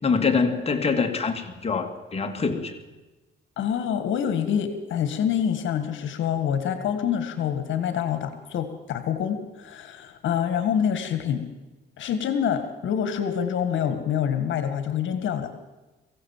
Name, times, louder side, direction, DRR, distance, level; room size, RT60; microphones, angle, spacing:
voice 1, 0.0-2.8, left 5 dB, 30° left, 4 dB, 2.6 m, -24 dB
voice 2, 3.6-11.5 12.0-15.5, left 8 dB, 75° left, 9 dB, 1.8 m, -26 dB
23.5 x 16.0 x 7.4 m, 1.2 s
cardioid pair, 90°, 20 cm